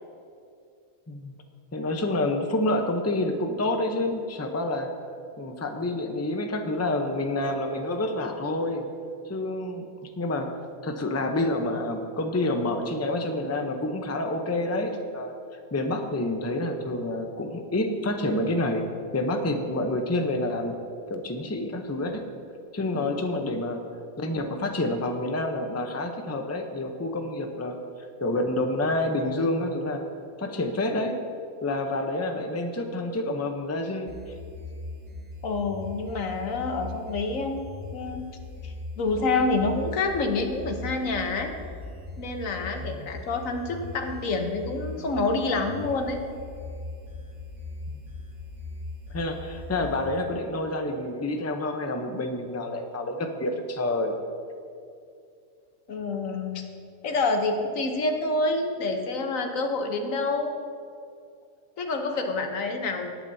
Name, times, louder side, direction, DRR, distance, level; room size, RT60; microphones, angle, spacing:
voice 1, 1.7-4.9 5.4-8.8 9.3-10.5 10.8-15.3 15.7-18.8 19.1-20.7 21.1-22.2 22.7-23.8 24.2-27.8 28.2-30.0 30.4-31.1 31.6-34.1 42.8-43.0 49.1-54.1, left 2 dB, 15° left, 4 dB, 0.6 m, -28 dB
sound 1, 34.1-50.1, left 2 dB, 55° right, 1.7 m, -40 dB
voice 2, 35.4-37.6 37.9-38.3 38.6-41.5 42.2-46.2 55.9-56.6 57.0-60.6 61.8-63.1, left 3 dB, 85° left, 4 dB, 1.4 m, -27 dB
18.5 x 8.9 x 2.7 m, 2.4 s
omnidirectional pair, 1.4 m